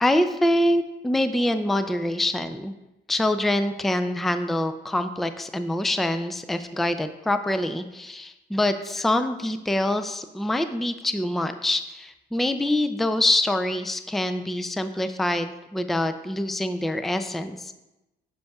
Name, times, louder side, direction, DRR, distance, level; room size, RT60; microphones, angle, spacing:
voice 1, 0.0-2.7 3.1-17.8, left 1 dB, ahead, 9 dB, 0.4 m, -25 dB
8.0 x 6.7 x 2.3 m, 0.98 s
cardioid pair, 90°, 20 cm